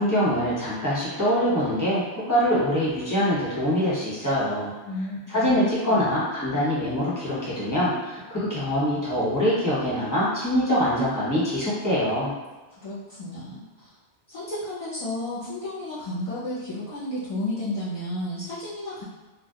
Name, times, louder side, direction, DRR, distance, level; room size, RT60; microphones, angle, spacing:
voice 1, 0.0-4.7 5.3-12.3, equal, 20° left, -9 dB, 0.8 m, -24 dB
voice 2, 4.8-6.1 12.8-13.9 14.3-19.0, left 1 dB, 50° left, -10 dB, 0.4 m, -32 dB
2.2 x 2.1 x 2.8 m, 1.2 s
omnidirectional pair, 1.2 m